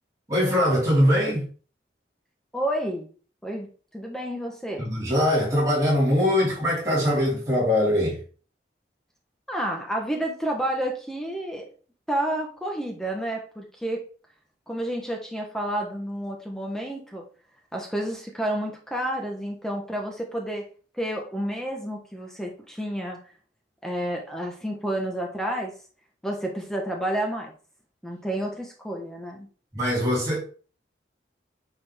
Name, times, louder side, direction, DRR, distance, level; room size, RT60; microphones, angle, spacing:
voice 1, 0.3-1.5 4.8-8.2 29.7-30.4, equal, 20° right, 4.1 m, -22 dB
voice 2, 2.5-3.1 3.4-3.7 3.9-4.9 9.5-11.7 12.1-14.1 14.7-17.2 17.7-20.6 21.0-23.2 23.8-25.7 26.2-27.5 28.0-29.5, right 1 dB, 5° left, 1.1 m, -30 dB
9.5 x 4.1 x 3.5 m
head